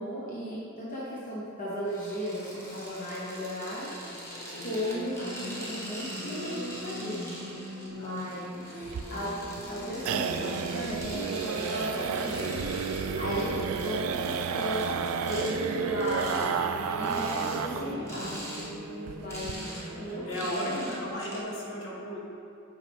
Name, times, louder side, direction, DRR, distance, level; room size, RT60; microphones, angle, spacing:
voice 1, 0.0-3.9 4.6-12.7 13.2-13.6 13.8-15.0 15.2-16.5 17.0-18.4 19.2-19.7 19.9-21.2, equal, 40° left, -7 dB, 0.9 m, -36 dB
sound 1, 1.8-15.5 16.0-16.5 17.0-17.6 18.1-18.7 19.0-21.4, equal, 10° left, 1.3 m, -43 dB
sound 2, 4.0-21.1, equal, 40° right, 0.7 m, -41 dB
voice 2, 8.0-8.5 8.8-8.9 13.1-13.6 20.3-22.2, equal, 60° left, -4 dB, 1.3 m, -36 dB
sound 3, 8.9-18.0 18.2-18.3 18.7-18.8 19.1-19.5, right 6 dB, 65° right, 0.3 m, -32 dB
8.1 x 5.3 x 3.5 m, 2.6 s
head